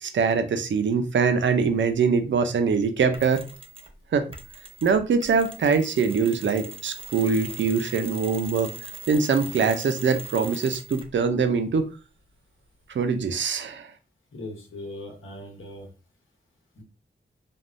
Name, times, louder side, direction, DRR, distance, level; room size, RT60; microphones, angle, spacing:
voice 1, 0.0-3.4 4.1-4.3 4.8-11.9 12.9-13.9, right 5 dB, 65° right, 7 dB, 0.5 m, -23 dB
Mechanisms, 3.1-4.0 4.3-11.2, right 4 dB, 25° right, 0.6 m, -41 dB
voice 2, 14.3-15.9 16.8-16.9, left 1 dB, 80° left, 1 dB, 1.1 m, -39 dB
3.5 x 2.2 x 2.5 m, 0.33 s
wide cardioid pair, 70°, 20 cm